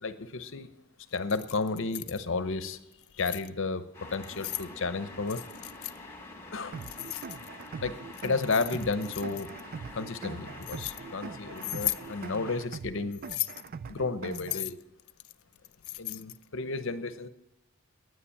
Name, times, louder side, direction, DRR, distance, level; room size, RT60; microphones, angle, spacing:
voice 1, 0.0-0.7 1.1-2.8 3.1-3.8 4.1-5.4 6.5-6.8 7.8-8.0 8.2-9.5 9.9-13.2 13.9-14.8 16.0-17.3, left 3 dB, 60° left, 12 dB, 0.8 m, -32 dB
Keys jangling, 1.1-2.2 2.9-3.5 4.1-4.7 5.3-6.0 6.8-7.7 8.1-9.6 10.3-11.0 11.6-12.1 13.1-13.7 14.3-16.4, left 19 dB, 90° left, 0.4 m, -37 dB
sound 1, 3.9-12.6, left 2 dB, 15° left, 2.2 m, -46 dB
sound 2, 6.7-14.7, right 5 dB, 45° right, 0.3 m, -42 dB
9.8 x 9.3 x 8.6 m, 0.91 s
head